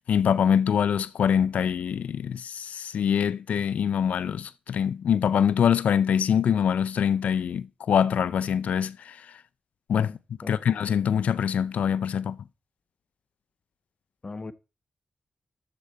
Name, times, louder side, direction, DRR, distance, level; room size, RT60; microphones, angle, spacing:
voice 1, 0.1-9.4 9.9-10.1 10.5-12.4, left 8 dB, 80° left, 0.4 m, -24 dB
voice 2, 10.0-10.6 14.2-14.5, left 3 dB, 40° left, 1.0 m, -40 dB
11.5 x 7.6 x 4.1 m
cardioid pair, 50°, 2 cm